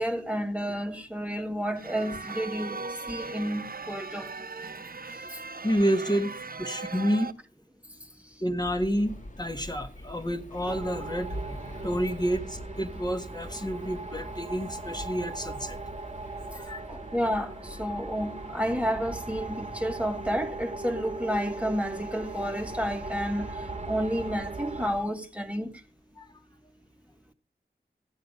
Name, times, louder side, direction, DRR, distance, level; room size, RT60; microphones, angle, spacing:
voice 1, 0.0-2.8 3.1-4.3 5.3-5.4 16.9-25.7, equal, 5° right, 1.5 m, -31 dB
sound 1, 1.8-7.3, right 4 dB, 55° right, 0.8 m, -39 dB
voice 2, 5.6-7.3 8.4-15.8 16.5-16.8 26.1-26.4, equal, 20° left, 1.5 m, -29 dB
sound 2, 8.6-25.1, left 1 dB, 45° left, 1.7 m, -45 dB
sound 3, 10.6-24.9, right 3 dB, 35° right, 1.3 m, -39 dB
15.5 x 9.0 x 5.4 m
wide cardioid pair, 65°, 18 cm